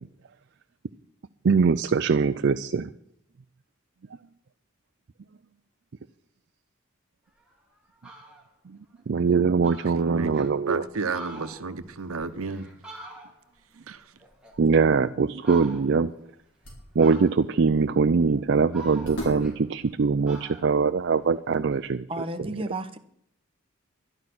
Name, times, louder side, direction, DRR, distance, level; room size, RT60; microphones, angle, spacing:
voice 1, 1.4-2.9 9.1-10.8 14.6-16.1 17.0-22.1, right 5 dB, 55° right, 0.4 m, -22 dB
Fowl, 7.4-7.5 7.9-8.5 9.0-9.1 9.3-9.4 9.6-10.5 11.0-13.6 13.9-15.0 15.4-16.1 17.0-17.6 18.2-19.9 20.2-21.8, right 3 dB, 5° right, 2.2 m, -45 dB
voice 2, 9.9-12.7 13.9-14.0, right 4 dB, 90° right, 0.9 m, -32 dB
sound 1, 16.2-20.9, right 1 dB, 55° left, 5.3 m, -42 dB
voice 3, 22.1-23.0, right 2 dB, 25° right, 0.9 m, -32 dB
12.0 x 11.5 x 6.1 m
head